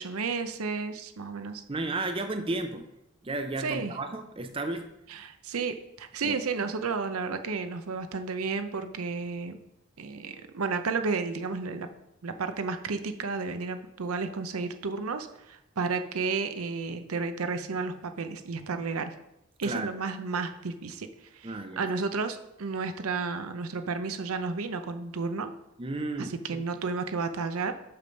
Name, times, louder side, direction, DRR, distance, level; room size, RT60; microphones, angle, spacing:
voice 1, 0.0-1.6 3.6-3.9 5.1-9.6 10.0-11.9 12.2-19.1 19.6-21.1 21.3-25.5 26.2-27.7, right 4 dB, 85° right, 8 dB, 0.7 m, -32 dB
voice 2, 1.7-2.9 3.2-4.9 6.2-6.4 19.6-19.9 21.4-21.9 25.8-26.6, right 2 dB, 25° right, 7 dB, 0.5 m, -33 dB
6.6 x 6.0 x 5.2 m, 0.84 s
head